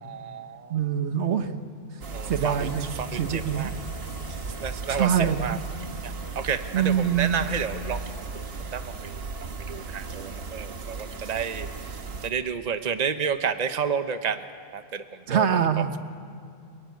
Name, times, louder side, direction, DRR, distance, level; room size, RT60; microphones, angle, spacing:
voice 1, 0.0-0.8 2.1-2.7 3.0-3.7 4.6-5.6 6.0-8.0 8.7-9.3 9.7-11.7 12.2-14.4 14.7-15.5, right 7 dB, 40° right, 9 dB, 1.0 m, -30 dB
voice 2, 0.7-1.5 2.2-3.7 4.9-5.6 6.7-7.4 15.3-15.9, right 8 dB, 75° right, 8 dB, 1.4 m, -25 dB
sound 1, 2.0-12.3, right 4 dB, 60° right, 1.4 m, -36 dB
sound 2, 2.6-7.6, left 1 dB, 30° left, 1.9 m, -45 dB
30.0 x 17.0 x 9.5 m, 2.5 s
omnidirectional pair, 1.2 m